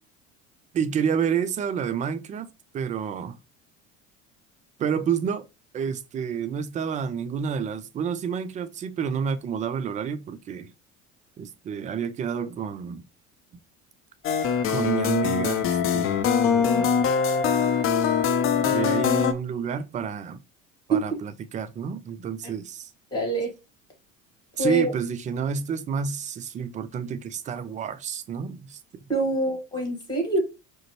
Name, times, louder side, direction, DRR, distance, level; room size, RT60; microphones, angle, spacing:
voice 1, 0.7-2.5 2.7-3.4 4.8-5.5 5.7-10.7 11.4-13.0 14.7-17.0 18.7-20.4 20.9-22.9 24.6-28.8, right 7 dB, 20° right, 0.3 m, -29 dB
sound 1, 14.2-19.3, left 6 dB, 35° left, 0.5 m, -23 dB
voice 2, 23.1-23.5 24.6-24.9 29.1-30.4, right 2 dB, 10° left, 2.1 m, -25 dB
4.9 x 2.0 x 3.0 m
figure-of-eight pair, 65°, 39 cm